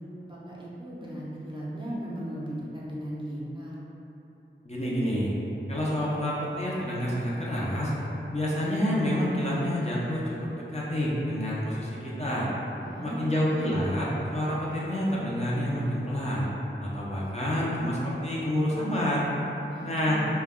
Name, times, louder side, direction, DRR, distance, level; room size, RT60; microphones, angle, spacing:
voice 1, 0.2-3.8 12.8-13.4 19.6-20.3, equal, 25° right, -7 dB, 0.5 m, -37 dB
voice 2, 4.6-5.3 5.7-7.9 8.3-10.2 10.7-12.5 13.0-16.5 16.8-19.3 19.8-20.2, equal, 35° left, -7 dB, 0.5 m, -28 dB
2.2 x 2.1 x 3.5 m, 3.0 s
wide cardioid pair, 45°, 20 cm